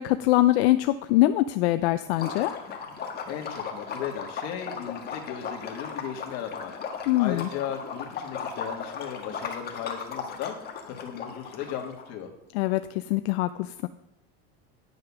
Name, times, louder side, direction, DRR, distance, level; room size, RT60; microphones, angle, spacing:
voice 1, 0.0-2.5 7.1-7.5 12.5-13.9, left 16 dB, 80° left, 11 dB, 0.6 m, -23 dB
Liquid, 2.1-12.0, left 6 dB, 30° left, 1.6 m, -37 dB
voice 2, 3.3-12.3, left 9 dB, 55° left, 3 dB, 2.0 m, -36 dB
10.0 x 6.5 x 5.9 m, 0.84 s
supercardioid pair, 135°, 32 cm